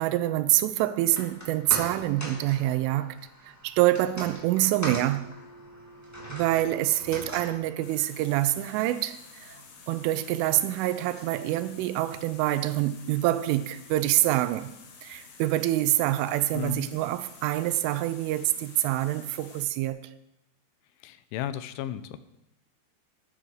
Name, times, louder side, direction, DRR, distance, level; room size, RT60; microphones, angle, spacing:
voice 1, 0.0-3.2 3.4-5.3 6.3-9.6 9.9-14.7 15.0-20.1, right 15 dB, 85° right, 3.2 m, -26 dB
sound 1, 1.0-13.4 13.7-13.8, equal, 10° left, 1.1 m, -43 dB
sound 2, 7.8-19.7, left 5 dB, 65° left, 3.6 m, -50 dB
voice 2, 16.5-16.9 21.0-22.2, left 11 dB, 85° left, 3.1 m, -34 dB
11.5 x 9.1 x 6.4 m
omnidirectional pair, 5.5 m